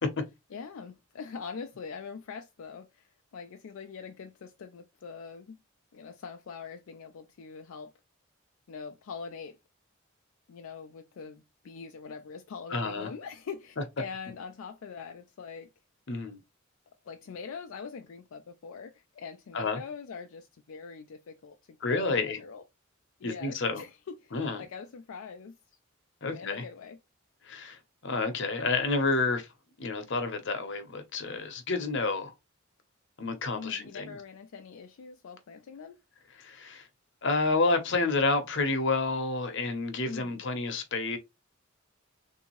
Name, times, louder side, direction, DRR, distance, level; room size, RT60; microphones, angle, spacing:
voice 1, 0.5-5.6 5.9-7.9 8.7-9.6 10.5-15.7 17.0-22.6 23.2-25.6 26.3-27.0 33.5-36.0 40.0-40.4, left 5 dB, 80° left, 0.4 m, -43 dB
voice 2, 12.7-13.1 16.1-16.4 19.5-19.8 21.8-22.4 23.2-23.8 24.3-24.6 26.2-26.6 27.4-29.5 29.8-32.3 33.2-34.1 36.4-36.9 37.2-41.2, left 3 dB, 60° left, 0.8 m, -29 dB
3.5 x 2.7 x 3.0 m
head